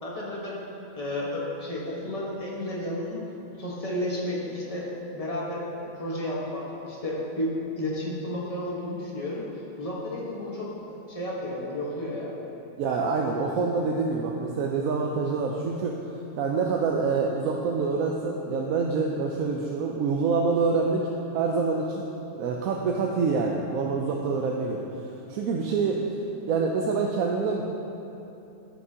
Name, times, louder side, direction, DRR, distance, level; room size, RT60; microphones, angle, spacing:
voice 1, 0.0-0.6 1.0-3.2 3.6-9.4 9.8-12.3, left 1 dB, 25° left, -5 dB, 1.4 m, -32 dB
voice 2, 12.8-16.0 16.4-21.1 21.3-22.1 22.4-24.8 25.3-26.0 26.5-27.6, right 4 dB, 80° right, 0 dB, 1.0 m, -26 dB
13.5 x 5.9 x 2.8 m, 2.9 s
omnidirectional pair, 1.5 m